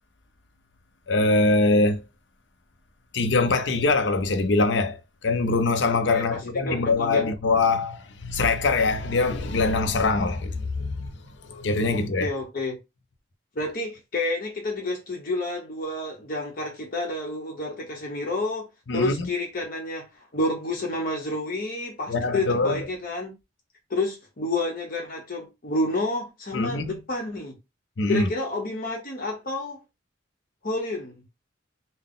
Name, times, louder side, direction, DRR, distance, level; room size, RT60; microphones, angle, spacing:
voice 1, 1.1-2.0 3.1-11.1 11.4-12.3 18.9-19.1 22.1-22.8 26.5-27.0 28.0-28.3, left 3 dB, 70° left, 0.6 m, -23 dB
voice 2, 6.1-7.2 11.9-12.8 13.5-23.3 23.9-27.5 28.1-29.8 30.6-31.2, left 2 dB, 50° left, 0.9 m, -29 dB
3.8 x 2.1 x 3.7 m
head